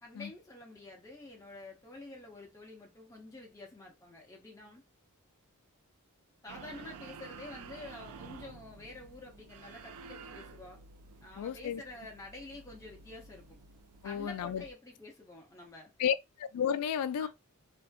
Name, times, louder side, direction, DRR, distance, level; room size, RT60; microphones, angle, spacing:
voice 1, 0.0-4.8 6.4-10.8 11.2-13.6 14.0-15.9 17.2-17.3, left 2 dB, 15° left, 0.6 m, -48 dB
sound 1, 6.5-14.7, right 5 dB, 75° right, 0.3 m, -51 dB
voice 2, 11.4-11.8 14.0-14.6 16.0-17.3, left 8 dB, 80° left, 0.3 m, -32 dB
2.5 x 2.4 x 2.2 m
head